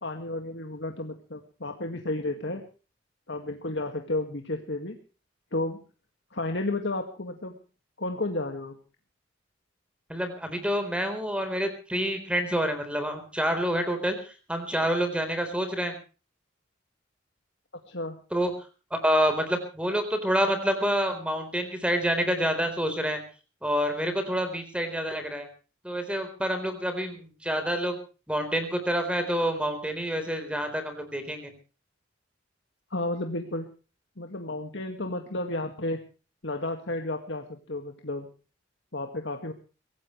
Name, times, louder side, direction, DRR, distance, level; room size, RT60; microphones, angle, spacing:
voice 1, 0.0-2.6 3.3-5.0 5.5-5.8 6.3-7.6 8.0-8.8 17.9-18.2 32.9-33.7 34.2-36.0 36.4-38.3 38.9-39.5, left 2 dB, 60° left, 4 dB, 2.0 m, -32 dB
voice 2, 10.1-16.0 18.3-18.5 18.9-23.2 23.6-25.5 25.8-28.0 28.3-31.5, equal, 5° right, 7 dB, 4.1 m, -27 dB
23.5 x 17.5 x 3.2 m, 0.36 s
head